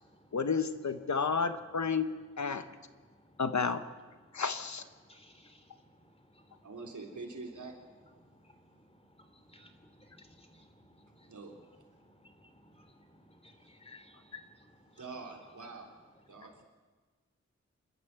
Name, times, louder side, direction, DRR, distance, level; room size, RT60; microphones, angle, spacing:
voice 1, 0.3-2.1 2.4-2.6 3.4-3.8 4.3-4.8 13.9-14.0, left 5 dB, 70° left, 10 dB, 1.2 m, -31 dB
voice 2, 3.0-3.3 5.1-5.8 6.1-6.4 8.2-11.3 12.0-15.0, equal, 20° left, 6 dB, 3.2 m, -61 dB
voice 3, 6.6-7.8 11.3-11.6 15.0-15.9 16.3-16.6, right 3 dB, 85° right, 0 dB, 3.6 m, -45 dB
27.5 x 12.5 x 7.6 m, 1.4 s
wide cardioid pair, 75°, 29 cm